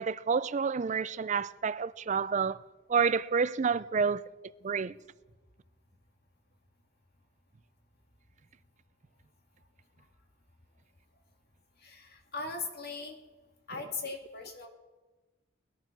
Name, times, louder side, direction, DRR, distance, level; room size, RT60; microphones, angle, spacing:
voice 1, 0.0-2.6 2.9-4.2 4.6-4.9, right 5 dB, 35° right, 0.4 m, -29 dB
voice 2, 11.8-13.2 13.7-14.7, left 4 dB, 50° left, 2.2 m, -39 dB
19.0 x 11.0 x 6.0 m
head